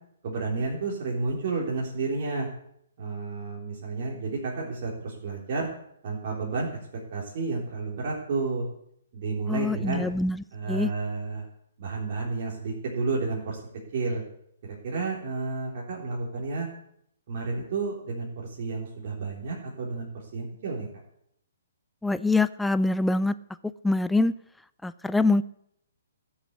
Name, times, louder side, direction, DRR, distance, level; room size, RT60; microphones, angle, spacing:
voice 1, 0.2-2.5 3.0-5.7 6.0-6.8 7.1-8.6 9.1-10.0 10.5-11.5 11.8-13.6 13.9-14.2 14.7-16.7 17.3-20.9, right 3 dB, 50° right, -3 dB, 3.7 m, -31 dB
voice 2, 9.5-10.9 22.0-23.3 23.8-24.3 24.8-25.4, left 2 dB, 5° left, 15 dB, 0.4 m, -24 dB
14.0 x 7.2 x 8.2 m, 0.70 s
figure-of-eight pair, 130°, 0 cm